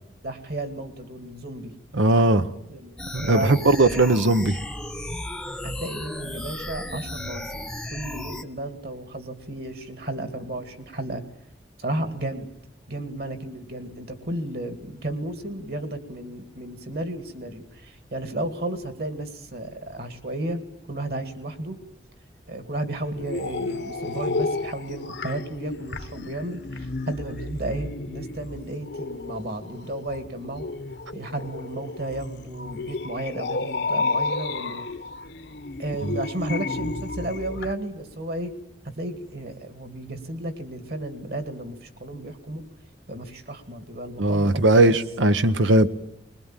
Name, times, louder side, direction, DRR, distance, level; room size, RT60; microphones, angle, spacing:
voice 1, 0.2-1.7 2.7-2.9 3.2-3.9 5.6-11.2 11.8-12.5 12.9-20.6 20.9-21.8 22.5-30.7 31.1-34.9 35.8-38.5 39.0-42.6 43.1-44.5, right 1 dB, 55° right, 9 dB, 2.3 m, -33 dB
voice 2, 1.9-2.5 3.1-4.6 36.0-36.1 44.2-45.9, right 2 dB, 85° right, 11 dB, 1.0 m, -19 dB
sound 1, 3.0-8.4, left 1 dB, 5° left, 0.9 m, -34 dB
sound 2, 23.1-37.7, left 3 dB, 60° left, 1.1 m, -32 dB
21.5 x 21.5 x 9.0 m, 0.82 s
head